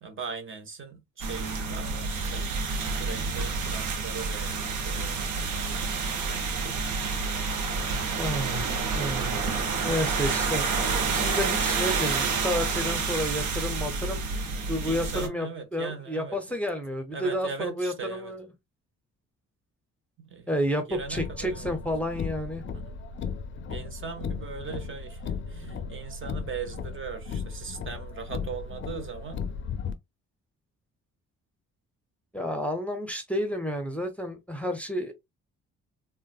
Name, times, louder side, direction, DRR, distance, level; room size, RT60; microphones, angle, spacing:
voice 1, 0.0-4.6 4.8-6.0 14.4-16.4 17.1-18.3 20.2-20.6 20.9-21.7 22.7-23.0 23.7-29.5, right 5 dB, 40° right, 0.8 m, -39 dB
sound 1, 1.2-15.3, right 4 dB, 75° right, 0.9 m, -29 dB
voice 2, 8.2-8.7 8.9-9.4 9.8-10.6 11.1-14.2 14.7-18.5 20.5-22.6 32.3-35.1, equal, 5° left, 0.7 m, -30 dB
Car, 20.9-29.9, left 5 dB, 40° left, 0.5 m, -36 dB
3.7 x 2.2 x 2.4 m
cardioid pair, 90°, 30 cm